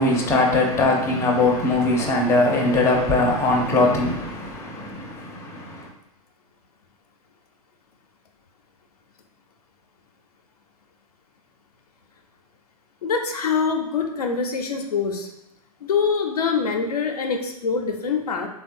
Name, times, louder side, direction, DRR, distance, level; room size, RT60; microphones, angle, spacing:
voice 1, 0.0-5.9, left 2 dB, 15° left, 0.5 m, -21 dB
voice 2, 13.0-15.3 15.8-18.5, left 5 dB, 90° left, 0.5 m, -24 dB
3.4 x 2.2 x 2.5 m
hypercardioid pair, 120°, 19 cm